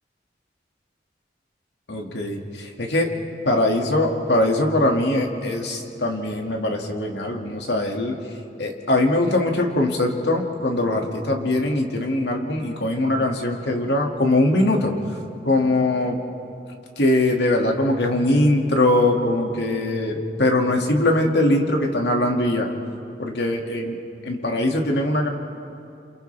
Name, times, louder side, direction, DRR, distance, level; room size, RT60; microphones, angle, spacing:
voice 1, 1.9-3.1 3.4-8.2 8.6-14.9 15.4-16.2 17.0-22.7 23.2-24.0 24.2-25.3, left 1 dB, 75° left, 1 dB, 2.2 m, -21 dB
28.5 x 28.0 x 3.4 m, 2.6 s
head